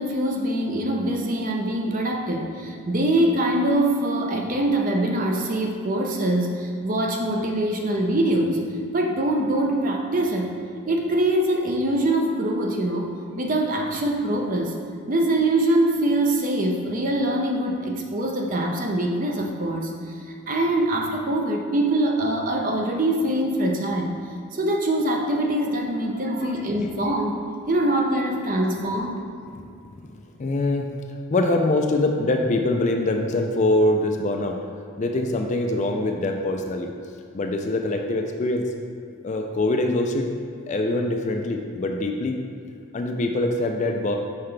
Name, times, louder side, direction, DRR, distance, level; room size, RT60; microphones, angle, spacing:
voice 1, 0.0-8.6 8.9-10.5 10.9-14.7 15.1-19.9 20.5-24.2 24.5-27.4 27.7-29.3, right 1 dB, 40° right, 2 dB, 0.5 m, -23 dB
voice 2, 26.0-26.9 28.6-28.7 30.4-31.0 31.3-34.6 35.0-36.9 37.3-38.7 39.2-40.3 40.7-42.4 42.9-44.2, left 2 dB, 35° left, 3 dB, 0.3 m, -24 dB
5.7 x 5.7 x 3.3 m, 2.5 s
head